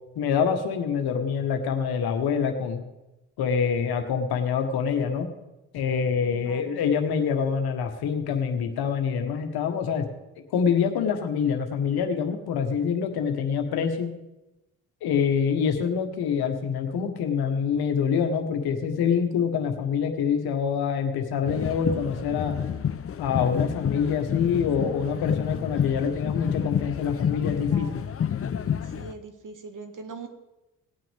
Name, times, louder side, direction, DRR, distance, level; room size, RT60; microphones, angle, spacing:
voice 1, 0.1-2.8 3.4-5.3 5.7-10.1 10.5-14.1 15.0-22.6 23.2-27.9, left 6 dB, 70° left, 6 dB, 1.5 m, -25 dB
voice 2, 6.2-6.8 27.6-28.1 28.9-30.3, right 4 dB, 50° right, 7 dB, 1.7 m, -42 dB
sound 1, 21.4-29.1, left 8 dB, 35° left, 0.7 m, -29 dB
18.5 x 9.0 x 3.5 m, 0.98 s
hypercardioid pair, 45°, 39 cm